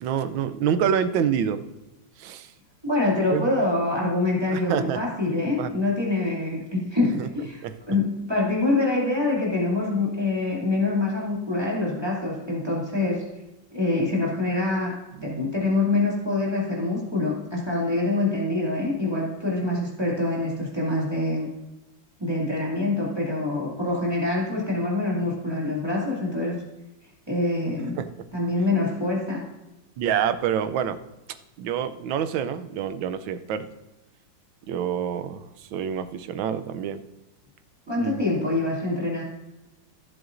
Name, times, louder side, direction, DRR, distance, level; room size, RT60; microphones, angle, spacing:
voice 1, 0.0-1.6 2.2-2.5 3.3-3.5 4.5-5.0 5.5-5.7 7.2-7.3 7.6-7.7 15.1-15.5 28.0-28.3 30.0-31.0 31.6-33.7 34.7-37.0 37.9-38.2, right 8 dB, 85° right, 10 dB, 1.4 m, -27 dB
voice 2, 2.8-13.2 13.7-14.9 15.2-21.5 22.2-26.6 27.3-28.0 28.3-29.4 37.9-39.2, left 2 dB, 15° right, -5 dB, 2.2 m, -25 dB
15.5 x 7.7 x 2.6 m, 0.99 s
omnidirectional pair, 2.1 m